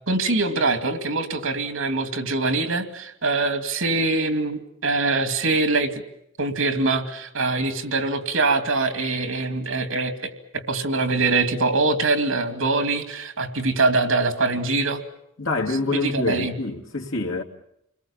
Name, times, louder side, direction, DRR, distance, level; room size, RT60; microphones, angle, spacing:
voice 1, 0.1-6.0 6.4-15.0 15.9-16.5, right 3 dB, 80° right, 2.5 m, -23 dB
voice 2, 15.4-17.4, left 3 dB, 75° left, 2.6 m, -26 dB
29.0 x 21.0 x 7.2 m
head